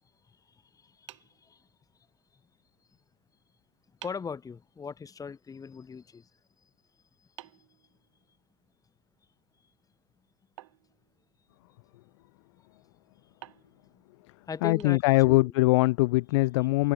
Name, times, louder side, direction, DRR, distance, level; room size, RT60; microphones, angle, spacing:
voice 1, 0.3-1.7 2.9-3.0 4.0-6.3 6.6-6.7 7.2-7.6 13.4-13.5 13.9-14.0 14.5-15.5, left 6 dB, 20° left, 5.8 m, -41 dB
sound 1, 1.1-2.2 3.4-3.5 4.0-4.4 7.4-8.6 10.6-11.7 13.4-15.5, right 17 dB, 75° right, 4.7 m, -53 dB
voice 2, 14.6-16.9, left 22 dB, 70° left, 0.8 m, -22 dB
hypercardioid pair, 105°, 16 cm